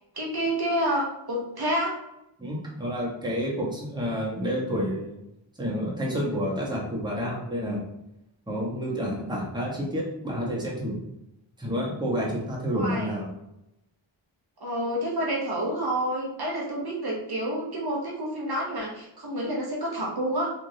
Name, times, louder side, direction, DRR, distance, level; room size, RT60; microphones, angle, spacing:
voice 1, 0.1-2.0 12.7-13.2 14.6-20.5, right 1 dB, 50° right, -3 dB, 0.8 m, -29 dB
voice 2, 2.4-5.2 5.6-7.8 8.5-11.0 11.6-13.3, equal, 10° right, -4 dB, 0.9 m, -29 dB
3.3 x 2.5 x 2.7 m, 0.86 s
wide cardioid pair, 65°, 47 cm